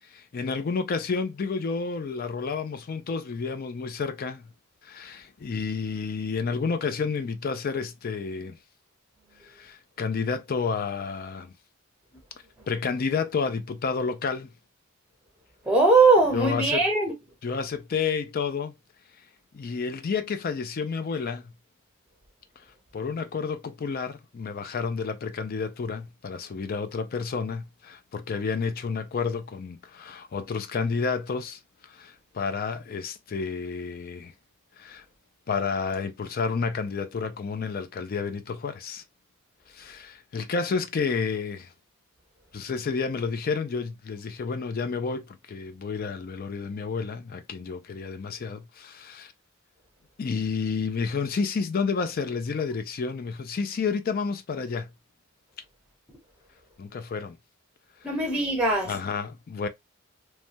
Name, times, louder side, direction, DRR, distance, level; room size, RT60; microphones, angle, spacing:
voice 1, 0.1-4.4 4.8-8.6 9.4-11.5 12.7-14.5 16.3-16.9 17.4-18.7 19.5-21.5 22.9-31.6 31.9-34.3 34.8-35.0 35.5-39.0 39.7-41.7 42.5-49.3 50.2-54.9 56.8-57.4 58.8-59.7, left 5 dB, 45° left, 0.4 m, -30 dB
voice 2, 15.7-17.1 58.0-58.9, right 3 dB, 5° right, 0.7 m, -20 dB
3.1 x 2.2 x 2.5 m
head